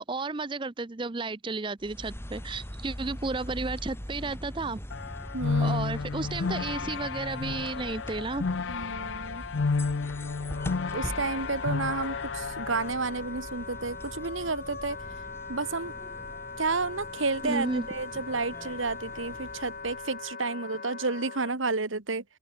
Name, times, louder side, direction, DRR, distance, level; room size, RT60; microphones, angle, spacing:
voice 1, 0.0-4.8 5.6-8.6 17.4-17.9 18.1-18.2, right 3 dB, 25° right, 0.5 m, -33 dB
sound 1, 1.8-20.3, equal, 10° left, 3.8 m, -42 dB
sound 2, 4.9-12.9, left 4 dB, 75° left, 0.6 m, -31 dB
voice 2, 5.3-5.9 8.7-9.4 10.9-15.0 15.5-15.9 16.6-22.2, right 3 dB, 85° right, 1.8 m, -31 dB
Wind instrument woodwind instrument, 10.1-21.5, left 4 dB, 45° left, 4.3 m, -41 dB
open air
head